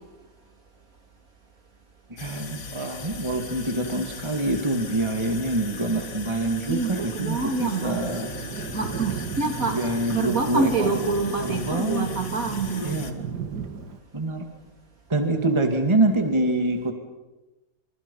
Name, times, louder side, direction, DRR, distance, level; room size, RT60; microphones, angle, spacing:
voice 1, 2.1-8.3 9.7-10.9 11.4-12.1 12.8-13.2 14.1-14.5 15.1-16.9, right 2 dB, 15° right, 2.3 m, -25 dB
sound 1, 2.2-13.1, left 5 dB, 50° left, 2.2 m, -39 dB
voice 2, 6.7-8.0 8.7-9.8 10.1-12.9, right 3 dB, 50° right, 3.3 m, -26 dB
Thunder, 7.6-14.0, right 6 dB, 65° right, 2.1 m, -35 dB
30.0 x 27.0 x 5.6 m
omnidirectional pair, 2.0 m